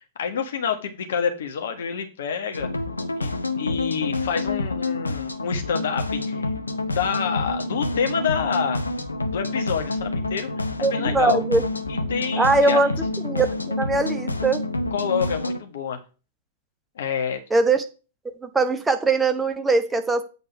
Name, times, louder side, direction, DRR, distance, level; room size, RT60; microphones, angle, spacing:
voice 1, 0.2-2.7 3.2-6.5 6.8-8.8 9.3-11.4 11.9-12.8 14.9-16.0 17.0-17.4, left 7 dB, 60° left, 5 dB, 1.6 m, -27 dB
sound 1, 2.5-15.6, left 2 dB, 80° left, 0.7 m, -28 dB
voice 2, 10.8-11.6 12.4-12.9 13.2-14.6 17.5-17.8 18.4-20.2, right 3 dB, 10° right, 7 dB, 1.0 m, -21 dB
8.4 x 5.3 x 4.7 m, 0.34 s
figure-of-eight pair, 100°, 0 cm